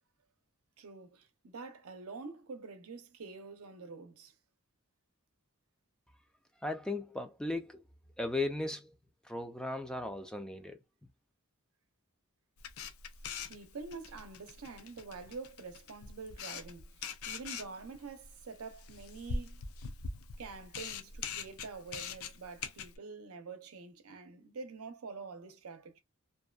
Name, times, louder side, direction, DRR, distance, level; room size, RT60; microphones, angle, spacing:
voice 1, 0.8-4.3 13.5-19.6 20.4-26.0, right 4 dB, 80° right, 0.6 m, -47 dB
voice 2, 6.6-7.8 8.2-9.0 9.2-10.8, left 2 dB, 5° left, 0.3 m, -36 dB
Camera, 12.6-23.0, left 4 dB, 75° left, 0.5 m, -43 dB
2.7 x 2.2 x 2.3 m
head